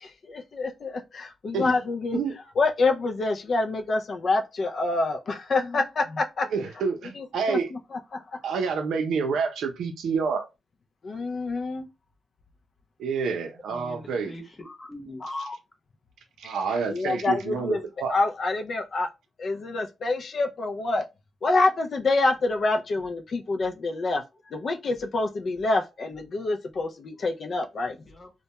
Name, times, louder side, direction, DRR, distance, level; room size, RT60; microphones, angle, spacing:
voice 1, 0.0-2.2 2.6-6.5 7.2-8.4 11.0-11.9 16.9-17.8 18.1-19.1 19.4-21.1 21.4-24.2 24.5-28.0, left 3 dB, 50° left, 0.4 m, -27 dB
voice 2, 6.5-7.7 8.4-10.5 13.0-14.3 16.4-18.2, right 5 dB, 85° right, 0.5 m, -28 dB
voice 3, 13.7-15.5 28.0-28.3, left 2 dB, 25° left, 0.9 m, -39 dB
2.2 x 2.1 x 2.8 m
cardioid pair, 105°, 0 cm